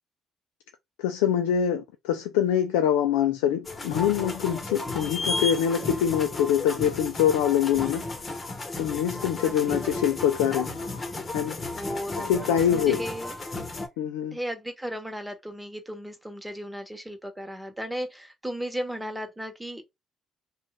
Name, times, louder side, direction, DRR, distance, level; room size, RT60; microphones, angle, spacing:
voice 1, 1.0-8.1 8.8-10.7 11.3-11.6 12.2-13.0 14.0-14.4, left 9 dB, 85° left, 0.3 m, -24 dB
sound 1, 3.6-13.9, left 2 dB, 35° left, 1.0 m, -33 dB
voice 2, 9.4-10.0 11.7-13.3 14.3-19.8, equal, 5° right, 1.0 m, -35 dB
2.6 x 2.3 x 3.2 m
hypercardioid pair, 55°, 0 cm